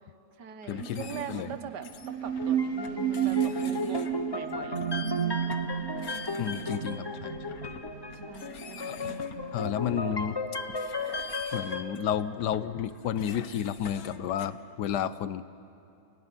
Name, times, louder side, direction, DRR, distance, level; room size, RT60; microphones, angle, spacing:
voice 1, 0.0-4.8 6.4-6.9 8.1-9.0, right 7 dB, 90° right, 9 dB, 1.8 m, -43 dB
sound 1, 0.6-14.6, left 7 dB, 65° left, 1.5 m, -49 dB
voice 2, 0.7-1.5 6.4-7.3 8.8-9.0 9.5-10.4 11.5-15.4, left 9 dB, 85° left, 14 dB, 1.4 m, -31 dB
sound 2, 0.8-10.0, right 9 dB, 50° right, 1.1 m, -33 dB
sound 3, 2.3-11.8, left 3 dB, 20° left, 0.9 m, -35 dB
29.0 x 17.5 x 9.9 m, 2.6 s
omnidirectional pair, 1.7 m